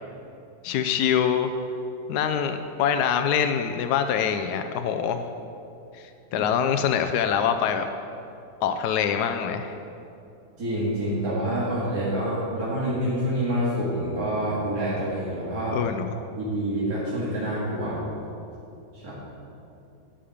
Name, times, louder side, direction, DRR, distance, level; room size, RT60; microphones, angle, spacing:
voice 1, 0.6-1.5 2.1-5.2 5.9-7.9 8.6-9.7 15.7-16.1, left 8 dB, 80° left, 7 dB, 1.1 m, -24 dB
voice 2, 10.6-15.8 16.4-18.0 18.9-19.1, right 1 dB, 65° right, -9 dB, 2.5 m, -27 dB
11.0 x 5.0 x 8.6 m, 2.7 s
omnidirectional pair, 1.7 m